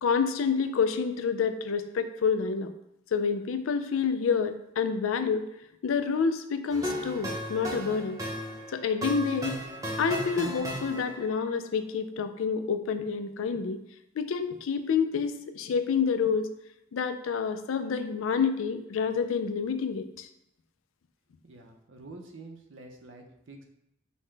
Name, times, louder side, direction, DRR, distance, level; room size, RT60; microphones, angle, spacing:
voice 1, 0.0-2.7 3.1-5.4 5.8-8.2 8.7-9.6 10.0-13.8 14.2-16.5 16.9-20.3, left 6 dB, 80° left, 9 dB, 0.4 m, -28 dB
sound 1, 6.7-11.4, equal, 15° right, 0.7 m, -35 dB
voice 2, 21.4-23.6, right 2 dB, 70° right, 3 dB, 0.6 m, -47 dB
5.5 x 2.2 x 3.2 m, 0.81 s
head